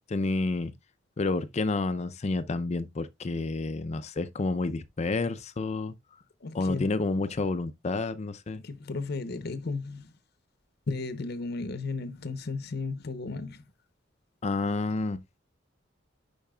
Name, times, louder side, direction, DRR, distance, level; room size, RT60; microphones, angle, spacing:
voice 1, 0.1-0.7 1.2-5.9 6.5-8.6 14.4-15.2, left 3 dB, 35° left, 0.5 m, -29 dB
voice 2, 6.4-6.9 8.5-10.1 10.9-13.6, left 3 dB, 60° left, 0.8 m, -34 dB
10.5 x 4.6 x 2.3 m
head